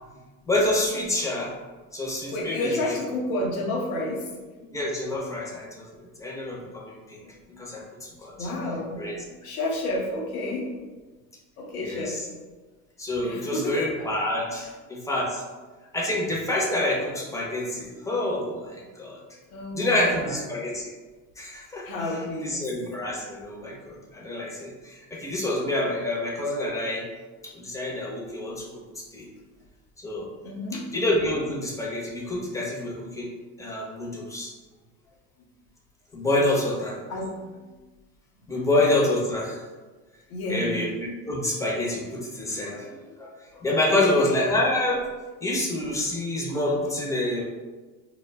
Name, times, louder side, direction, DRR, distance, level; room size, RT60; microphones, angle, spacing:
voice 1, 0.5-1.5 1.9-2.7 4.7-7.2 7.6-8.3 9.0-9.1 11.8-12.2 13.0-15.4 15.9-19.2 19.7-20.9 21.4-21.9 22.4-27.1 27.4-29.3 30.0-30.3 30.9-33.3 33.6-34.5 36.1-37.0 38.5-39.6 40.5-45.1 45.4-47.5, left 1 dB, 5° left, -2 dB, 0.6 m, -27 dB
voice 2, 2.2-4.7 7.2-8.1 8.4-9.1 9.4-10.7 11.6-12.2 13.2-14.3 19.5-20.5 21.8-22.7 23.1-23.2 30.4-30.9 37.1-37.4 40.3-40.8 43.9-44.2, left 1 dB, 90° left, -1 dB, 0.7 m, -31 dB
2.1 x 2.1 x 3.3 m, 1.3 s
hypercardioid pair, 75°, 42 cm